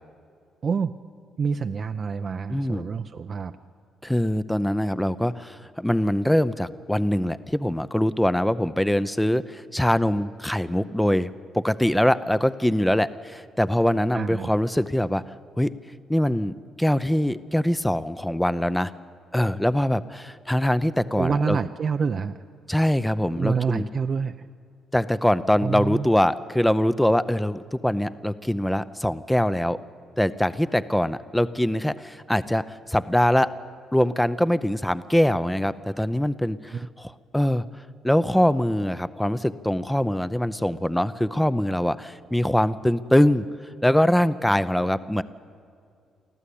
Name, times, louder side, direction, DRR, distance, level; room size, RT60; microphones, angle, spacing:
voice 1, 1.4-3.5 14.1-14.5 21.2-22.4 23.4-24.4 25.6-26.1 36.7-36.9, right 5 dB, 45° right, 8 dB, 0.6 m, -27 dB
voice 2, 2.5-2.9 4.0-11.3 11.5-15.2 15.6-15.7 16.1-18.9 19.3-21.6 22.7-23.9 24.9-29.8 30.2-33.5 33.9-37.6 38.0-43.5 43.8-45.2, left 1 dB, 5° left, 15 dB, 0.6 m, -23 dB
24.0 x 14.5 x 8.5 m, 2.3 s
cardioid pair, 90°, 0 cm